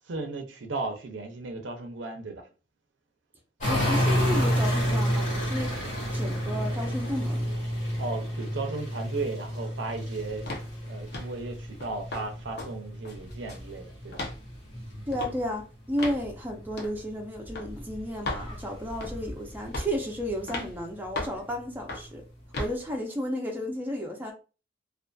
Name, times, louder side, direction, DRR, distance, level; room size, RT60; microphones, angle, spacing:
voice 1, 0.1-2.5 8.0-14.2, right 3 dB, 65° right, 0.5 m, -35 dB
sound 1, 3.6-15.6 15.9-20.8 21.3-21.4, equal, 40° left, 1.1 m, -30 dB
voice 2, 3.6-7.4 15.1-22.2 22.6-24.3, equal, 10° right, 0.4 m, -33 dB
sound 2, 10.5-10.7 11.1-11.4 11.8-12.3 12.6-12.7 13.1-13.7 14.1-14.4 15.1-15.3 16.0-16.2 16.8-17.0 17.6-17.7 18.3-18.5 19.0-19.3 19.7-20.0 20.5-20.7 21.2-21.4 21.9-22.1 22.5-22.8, left 2 dB, 55° left, 0.7 m, -35 dB
2.5 x 2.4 x 2.2 m
head